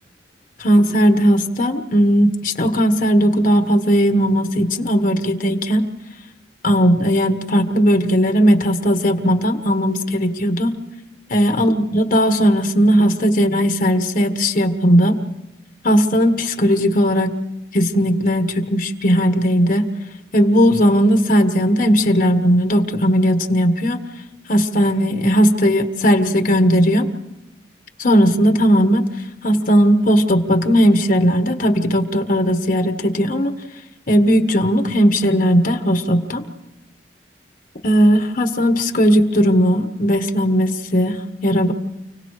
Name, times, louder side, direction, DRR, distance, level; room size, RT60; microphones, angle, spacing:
voice 1, 0.6-5.8 6.6-10.7 11.3-15.2 15.8-17.3 17.7-19.9 20.3-24.0 24.5-27.1 28.0-29.0 29.4-33.5 34.1-36.4 37.8-41.7, equal, 50° left, 7 dB, 1.5 m, -17 dB
29.5 x 18.0 x 5.0 m, 0.94 s
head